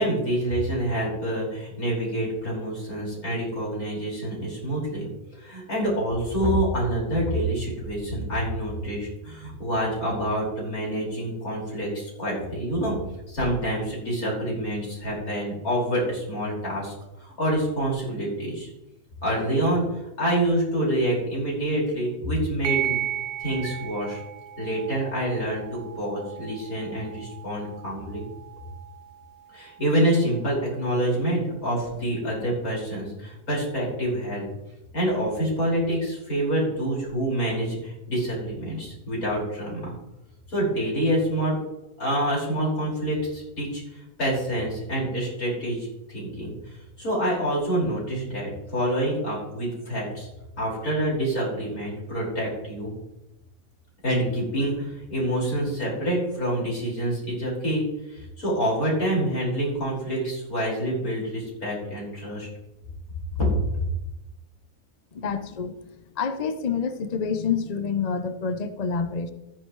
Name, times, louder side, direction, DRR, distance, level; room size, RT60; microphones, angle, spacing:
voice 1, 0.0-13.0 13.3-16.9 17.2-18.7 19.2-19.8 20.2-23.0 23.4-24.2 24.6-28.2 29.5-34.4 34.9-39.9 40.5-41.6 42.0-43.8 44.2-50.3 50.6-52.9 54.0-62.5 63.4-63.8, right 1 dB, 80° left, -4 dB, 5.7 m, -27 dB
sound 1, 22.6-31.6, right 11 dB, 75° right, 1.1 m, -36 dB
voice 2, 65.1-69.3, left 6 dB, 35° left, 9 dB, 0.7 m, -28 dB
14.0 x 10.5 x 3.2 m, 0.93 s
omnidirectional pair, 1.5 m